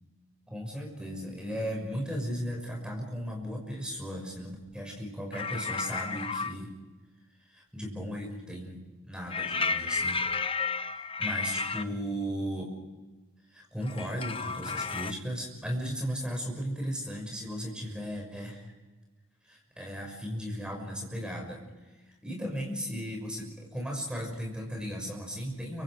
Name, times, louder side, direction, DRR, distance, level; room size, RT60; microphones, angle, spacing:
voice 1, 0.5-6.7 7.5-10.3 10.7-12.8 13.5-18.6 19.5-21.6 21.9-25.8, equal, 5° right, 0 dB, 6.1 m, -36 dB
sound 1, 5.3-6.5 9.3-11.8 13.8-15.1, left 4 dB, 25° left, 0.6 m, -32 dB
29.5 x 25.0 x 5.0 m, 1.2 s
head